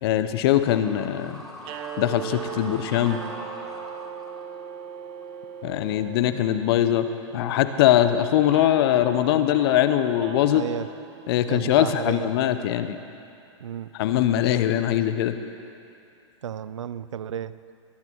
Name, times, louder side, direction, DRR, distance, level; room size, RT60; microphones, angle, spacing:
voice 1, 0.0-1.4 2.0-3.2 5.6-7.1 7.3-10.7 11.3-13.0 13.9-15.4, left 12 dB, 55° left, 10 dB, 0.9 m, -22 dB
sound 1, 0.7-7.0, left 1 dB, 5° left, 2.1 m, -44 dB
sound 2, 1.6-11.8, right 9 dB, 35° right, 1.0 m, -39 dB
voice 2, 10.5-10.9 11.5-12.3 13.6-13.9 16.4-17.5, right 9 dB, 80° right, 16 dB, 0.5 m, -32 dB
20.0 x 10.5 x 4.7 m, 2.5 s
hypercardioid pair, 120°, 16 cm